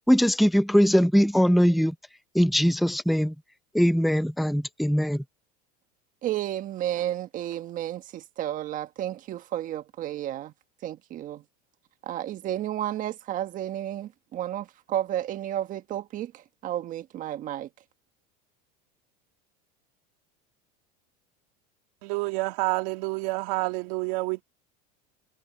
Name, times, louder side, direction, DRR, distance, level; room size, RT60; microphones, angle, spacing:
voice 1, 0.1-1.9 2.3-3.3 3.7-5.2, equal, ahead, 0.6 m, -21 dB
voice 2, 6.2-10.5 10.8-11.4 12.0-17.7, right 12 dB, 40° right, 1.5 m, -32 dB
voice 3, 22.0-24.4, right 25 dB, 70° right, 2.2 m, -28 dB
supercardioid pair, 125°, 21 cm